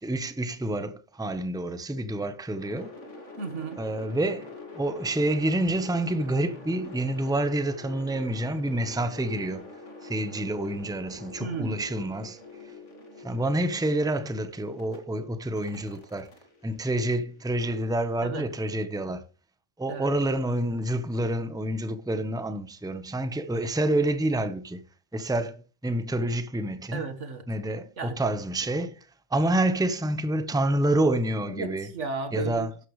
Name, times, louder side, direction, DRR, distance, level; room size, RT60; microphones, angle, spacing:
voice 1, 0.0-2.9 3.8-9.7 10.0-12.4 13.2-16.3 16.6-19.2 19.8-24.8 25.1-27.0 27.5-29.0 29.3-31.9 32.3-32.7, right 1 dB, 5° right, 0.9 m, -28 dB
sound 1, 2.6-15.0 15.6-17.7, left 3 dB, 85° left, 2.8 m, -45 dB
voice 2, 3.4-3.8 11.4-11.8 18.2-18.5 19.9-20.1 26.9-27.5 28.0-28.2 31.5-32.9, right 4 dB, 85° right, 1.9 m, -34 dB
13.0 x 11.0 x 3.2 m
omnidirectional pair, 1.2 m